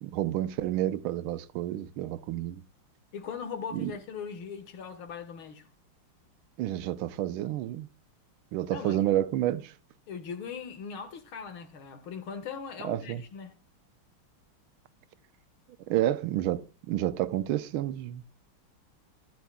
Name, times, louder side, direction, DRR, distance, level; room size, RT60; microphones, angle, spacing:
voice 1, 0.0-2.6 3.7-3.9 6.6-7.9 8.5-9.7 12.8-13.2 15.9-18.2, right 13 dB, 85° right, 1.5 m, -30 dB
voice 2, 3.1-5.7 8.7-9.0 10.1-13.5, left 6 dB, 75° left, 2.2 m, -40 dB
15.0 x 10.0 x 2.2 m
omnidirectional pair, 2.3 m